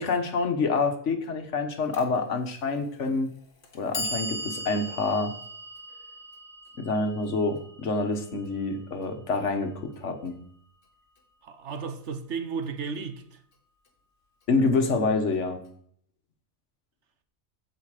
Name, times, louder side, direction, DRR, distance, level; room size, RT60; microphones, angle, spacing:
voice 1, 0.0-3.3 3.7-5.3 6.8-10.4 14.5-15.6, left 3 dB, 65° left, 1.5 m, -27 dB
Clock, 1.9-2.0 3.0-3.1 3.6-9.7, equal, 45° left, 1.6 m, -39 dB
voice 2, 11.4-13.4, right 5 dB, 65° right, 1.2 m, -34 dB
15.0 x 5.2 x 4.9 m
omnidirectional pair, 1.3 m